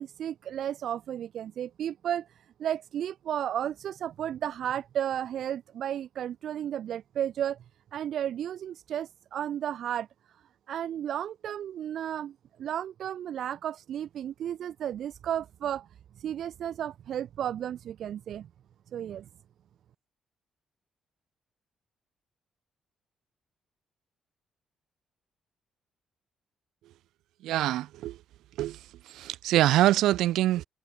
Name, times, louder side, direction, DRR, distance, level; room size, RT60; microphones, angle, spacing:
voice 1, 0.0-7.6 7.9-10.1 10.7-15.9 16.2-18.5 18.9-19.3, right 10 dB, 70° right, 0.6 m, -33 dB
voice 2, 27.4-28.2 28.6-30.6, right 14 dB, 85° right, 2.2 m, -25 dB
cardioid pair, 90°, 0 cm